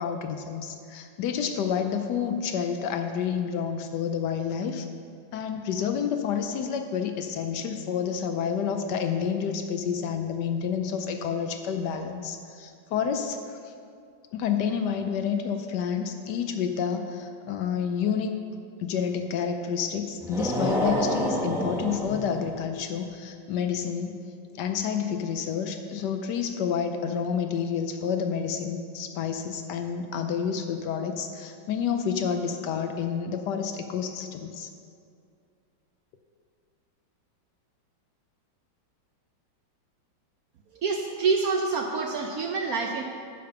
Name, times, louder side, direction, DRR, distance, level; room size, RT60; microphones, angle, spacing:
voice 1, 0.0-4.9 5.3-13.7 14.3-18.3 18.8-24.2 24.5-34.7, left 7 dB, 70° left, 6 dB, 1.1 m, -29 dB
sound 1, 20.2-22.6, equal, ahead, 1.1 m, -28 dB
voice 2, 40.7-43.0, right 4 dB, 70° right, 3 dB, 0.9 m, -27 dB
9.5 x 5.1 x 6.7 m, 2.3 s
omnidirectional pair, 2.1 m